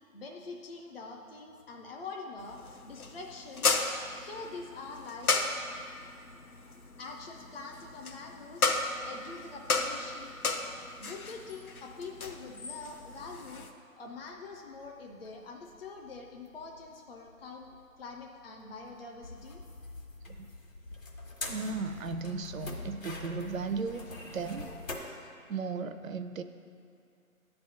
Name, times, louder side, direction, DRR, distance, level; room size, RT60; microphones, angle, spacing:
voice 1, 0.1-2.6 2.8-3.7 4.1-5.3 7.0-8.7 9.0-10.6 11.0-13.7 14.0-19.6, left 4 dB, 45° left, 0 dB, 0.6 m, -45 dB
sound 1, 2.4-13.7, left 3 dB, 90° left, 0.8 m, -35 dB
sound 2, 14.2-24.9, left 2 dB, 65° left, 1.5 m, -45 dB
voice 2, 21.5-24.7 25.5-26.4, right 4 dB, 65° right, 9 dB, 0.6 m, -36 dB
9.3 x 3.4 x 6.7 m, 2.5 s
figure-of-eight pair, 155°, 43 cm